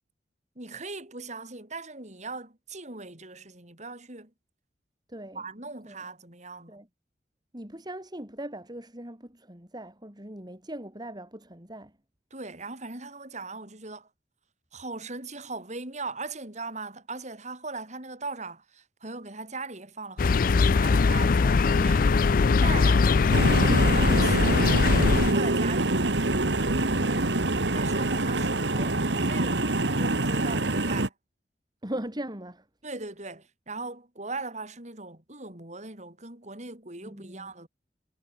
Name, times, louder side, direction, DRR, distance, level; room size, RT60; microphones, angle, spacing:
voice 1, 0.6-4.3 5.3-6.8 12.3-14.1 14.7-22.1 22.6-23.6 24.0-26.0 27.7-31.1 32.8-37.7, right 3 dB, 40° right, 6.5 m, -39 dB
voice 2, 5.1-5.4 5.9-6.0 6.7-6.9 7.5-11.9 31.8-32.6 37.0-37.5, right 1 dB, 25° right, 4.2 m, -40 dB
sound 1, 20.2-25.3, left 4 dB, 55° left, 0.4 m, -21 dB
sound 2, 23.3-31.1, right 2 dB, 90° right, 2.2 m, -25 dB
head